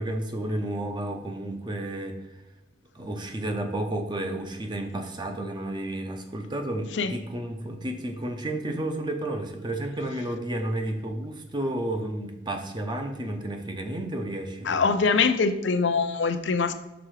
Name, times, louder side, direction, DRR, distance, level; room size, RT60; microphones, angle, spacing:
voice 1, 0.0-2.2 2.9-15.1, right 1 dB, 25° right, 5 dB, 0.7 m, -32 dB
voice 2, 14.7-16.7, left 4 dB, 85° left, 9 dB, 0.6 m, -23 dB
6.1 x 3.8 x 4.8 m, 1.0 s
head